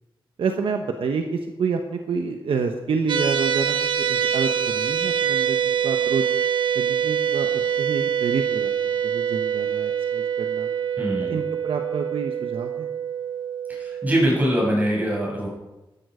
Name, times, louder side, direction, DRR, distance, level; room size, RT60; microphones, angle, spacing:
voice 1, 0.4-6.2 6.7-10.7 11.2-12.9, right 5 dB, 85° right, 4 dB, 1.2 m, -28 dB
sound 1, 3.1-14.3, right 8 dB, 60° right, 1.0 m, -25 dB
voice 2, 11.0-11.4 13.7-15.5, equal, 20° right, -3 dB, 6.8 m, -23 dB
15.0 x 12.5 x 5.1 m, 1.1 s
wide cardioid pair, 130°, 9 cm